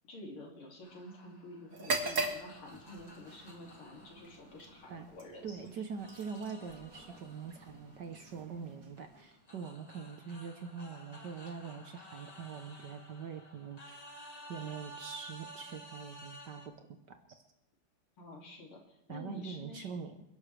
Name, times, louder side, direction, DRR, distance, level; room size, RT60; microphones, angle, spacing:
voice 1, 0.0-5.8 18.2-20.0, left 1 dB, 75° left, -1 dB, 3.6 m, -49 dB
sound 1, 0.8-5.5 6.0-16.7, equal, 20° left, 1.6 m, -54 dB
sound 2, 1.7-9.5, right 3 dB, 45° right, 1.9 m, -42 dB
voice 2, 5.4-14.0 14.5-16.6 17.1-17.4 19.1-20.2, right 6 dB, 60° right, 6 dB, 1.4 m, -43 dB
28.0 x 11.0 x 3.3 m, 0.83 s
omnidirectional pair, 2.4 m